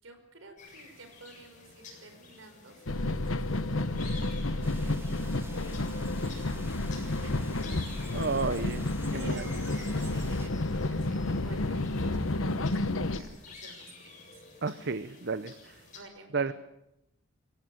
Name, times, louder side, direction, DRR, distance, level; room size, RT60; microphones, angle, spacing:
voice 1, 0.0-5.5 6.2-7.6 9.1-14.4 15.9-16.5, right 2 dB, 70° right, 7 dB, 5.3 m, -52 dB
sound 1, 0.6-16.0, left 4 dB, 40° left, 7.6 m, -51 dB
sound 2, 2.9-13.2, left 2 dB, 85° left, 1.2 m, -31 dB
sound 3, 4.6-10.5, right 2 dB, 10° right, 3.2 m, -50 dB
voice 2, 8.1-8.9 9.1-9.4 14.6-15.5 16.3-16.5, right 4 dB, 55° right, 13 dB, 0.8 m, -31 dB
24.0 x 17.0 x 9.4 m, 0.84 s
head